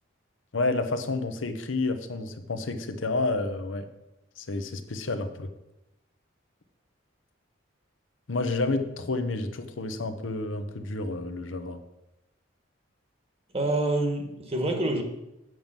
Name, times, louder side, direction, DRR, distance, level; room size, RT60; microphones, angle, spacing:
voice 1, 0.5-3.9 4.4-5.5 8.3-11.8, left 2 dB, 80° left, 8 dB, 0.9 m, -30 dB
voice 2, 13.5-15.0, right 2 dB, 30° right, 4 dB, 1.3 m, -26 dB
7.8 x 5.3 x 7.3 m, 0.91 s
head